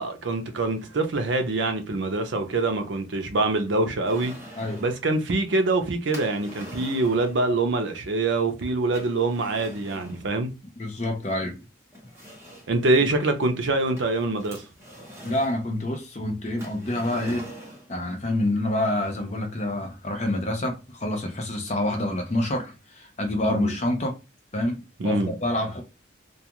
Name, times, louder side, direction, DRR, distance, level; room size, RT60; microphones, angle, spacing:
voice 1, 0.0-4.3 4.8-10.5 12.7-14.6 23.5-23.7 25.0-25.3, right 2 dB, 65° right, 0.5 m, -25 dB
sound 1, 4.0-5.0 6.1-7.4 8.9-10.3 11.3-11.4 11.9-12.8 14.0-15.6 16.6-17.9, equal, 15° right, 0.9 m, -43 dB
voice 2, 4.6-4.9 10.8-11.6 15.2-17.5 17.9-24.2 24.5-25.8, left 1 dB, 35° left, 0.6 m, -27 dB
2.3 x 2.3 x 2.9 m
head